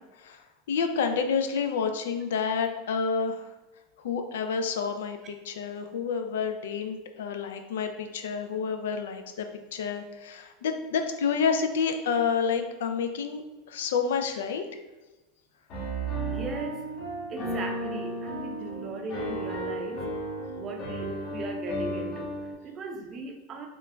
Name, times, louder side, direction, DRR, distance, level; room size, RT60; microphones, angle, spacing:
voice 1, 0.0-3.5 4.0-13.4 13.7-14.6, left 6 dB, 70° left, 7 dB, 0.3 m, -29 dB
Piano, 15.7-22.5, right 1 dB, 50° left, 0.9 m, -34 dB
voice 2, 16.3-16.9 17.3-20.0 20.5-23.7, right 3 dB, 40° right, 3 dB, 0.5 m, -38 dB
3.5 x 2.4 x 2.3 m, 1.1 s
hypercardioid pair, 85°, 0 cm